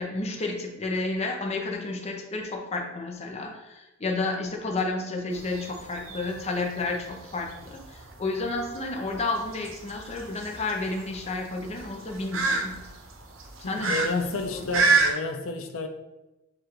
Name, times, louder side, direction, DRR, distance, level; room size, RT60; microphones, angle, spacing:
voice 1, 0.0-12.7 13.6-14.2 14.5-14.8, left 3 dB, 30° left, 2 dB, 0.6 m, -31 dB
sound 1, 5.3-15.1, right 4 dB, 85° right, 0.7 m, -29 dB
voice 2, 13.6-15.9, left 3 dB, 85° left, 5 dB, 0.5 m, -31 dB
6.8 x 2.4 x 3.0 m, 1.0 s
head